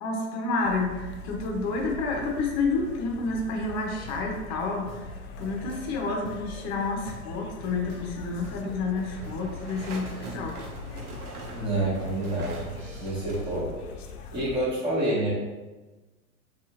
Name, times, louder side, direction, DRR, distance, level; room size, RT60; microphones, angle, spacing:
voice 1, 0.0-10.6, left 3 dB, 40° left, 1 dB, 0.7 m, -30 dB
sound 1, 0.6-14.6, left 3 dB, 75° left, 0.5 m, -42 dB
sound 2, 4.1-13.5, right 1 dB, 40° right, 0.7 m, -48 dB
sound 3, 7.5-14.4, right 2 dB, 90° right, 0.8 m, -44 dB
voice 2, 11.5-12.7 13.0-13.7 14.3-15.3, right 1 dB, 10° right, -9 dB, 0.9 m, -28 dB
2.6 x 2.4 x 2.8 m, 1.2 s
hypercardioid pair, 110°, 43 cm